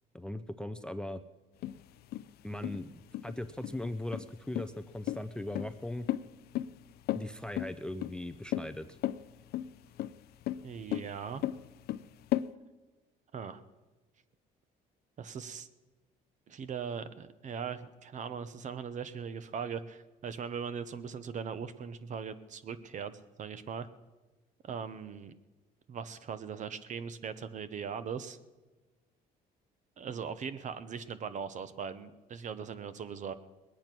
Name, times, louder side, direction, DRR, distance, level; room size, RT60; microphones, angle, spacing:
voice 1, 0.1-1.2 2.4-6.1 7.1-8.9, left 1 dB, 5° left, 11 dB, 0.5 m, -39 dB
sound 1, 1.6-12.5, left 13 dB, 70° left, 0.5 m, -36 dB
voice 2, 10.6-11.4 13.3-13.6 15.2-15.7 16.5-23.9 24.6-25.3 25.9-28.4 30.0-33.3, right 6 dB, 45° right, 13 dB, 0.9 m, -40 dB
20.0 x 8.8 x 6.0 m, 1.2 s
cardioid pair, 110°, 17 cm